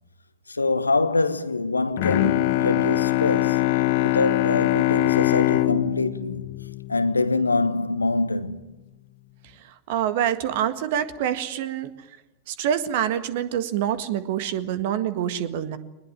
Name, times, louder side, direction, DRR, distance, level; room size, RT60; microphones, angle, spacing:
voice 1, 0.5-3.6 4.0-6.4 6.9-8.7, left 3 dB, 80° left, 1.2 m, -24 dB
Bowed string instrument, 2.0-7.6, left 17 dB, 50° left, 1.2 m, -23 dB
voice 2, 9.9-11.9 12.5-15.8, right 10 dB, 50° right, 1.8 m, -26 dB
22.5 x 20.0 x 9.1 m
figure-of-eight pair, 90°, 0 cm